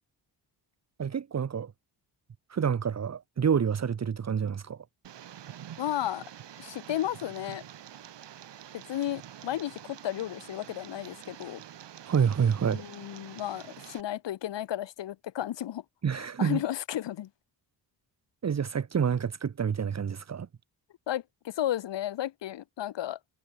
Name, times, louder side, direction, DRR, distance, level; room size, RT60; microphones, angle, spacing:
voice 1, 1.0-1.7 2.5-4.8 12.1-12.8 16.0-16.6 18.4-20.5, right 7 dB, 35° right, 2.0 m, -28 dB
Tick, 5.0-14.0, right 10 dB, 75° right, 7.9 m, -47 dB
voice 2, 5.8-6.2 6.6-7.6 8.7-11.6 12.7-15.8 16.1-17.3 21.1-23.2, left 12 dB, 80° left, 2.0 m, -33 dB
wide cardioid pair, 165°, 43 cm